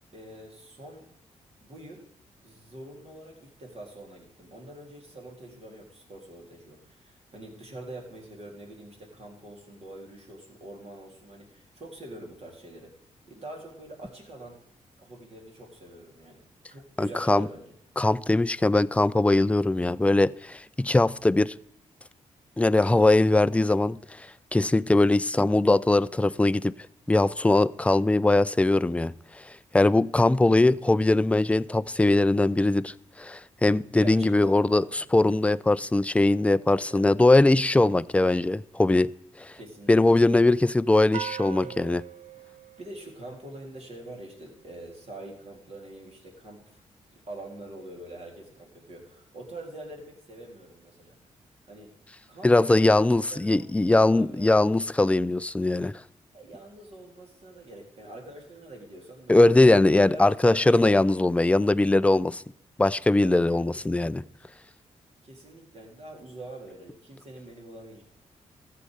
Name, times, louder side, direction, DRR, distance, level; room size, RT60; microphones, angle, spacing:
voice 1, 0.1-1.1 1.6-2.1 2.4-12.9 13.3-14.6 15.0-17.7 33.9-35.0 36.9-37.1 39.5-40.2 41.6-41.8 42.8-46.8 47.1-51.2 51.7-51.9 52.3-54.8 56.3-59.5 60.1-61.1 63.2-63.6 63.9-64.2 65.2-68.0, right 1 dB, 55° right, 3.7 m, -44 dB
voice 2, 17.0-17.5 18.0-21.5 22.6-24.0 24.5-26.7 27.1-29.1 29.7-34.8 35.1-39.1 39.4-39.5 39.9-42.0 52.4-55.9 59.3-62.4 62.8-64.2, left 2 dB, 10° left, 0.4 m, -21 dB
sound 1, 41.1-43.7, right 10 dB, 80° right, 0.6 m, -40 dB
13.5 x 7.7 x 5.0 m
cardioid pair, 60°, 13 cm